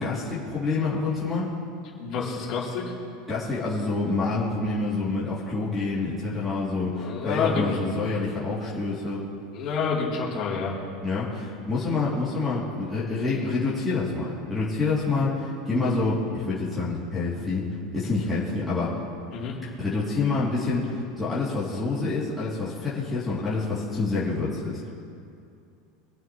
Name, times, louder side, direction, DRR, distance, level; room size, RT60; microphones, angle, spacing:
voice 1, 0.0-1.5 3.3-9.2 11.0-17.6 17.9-18.9 19.8-24.9, left 3 dB, 5° left, -10 dB, 2.7 m, -27 dB
voice 2, 2.0-2.9 7.0-7.7 9.5-10.8 19.3-19.5, left 5 dB, 40° left, -5 dB, 3.2 m, -28 dB
25.5 x 8.9 x 3.1 m, 2.4 s
supercardioid pair, 160°, 0 cm